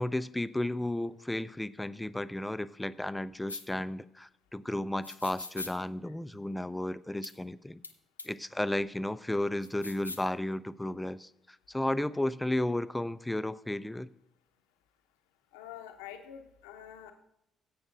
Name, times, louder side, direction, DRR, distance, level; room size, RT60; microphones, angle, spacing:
voice 1, 0.0-7.8 8.3-11.3 11.7-14.1, left 1 dB, 10° left, 15 dB, 0.5 m, -33 dB
sound 1, 3.5-3.6 5.0-5.7 7.2-7.3 7.8-7.9 8.2-8.3 9.6-10.3, left 2 dB, 90° left, 0.4 m, -41 dB
voice 2, 15.5-17.1, left 10 dB, 70° left, 5 dB, 0.9 m, -46 dB
19.5 x 8.7 x 2.5 m, 0.82 s
figure-of-eight pair, 45°, 0 cm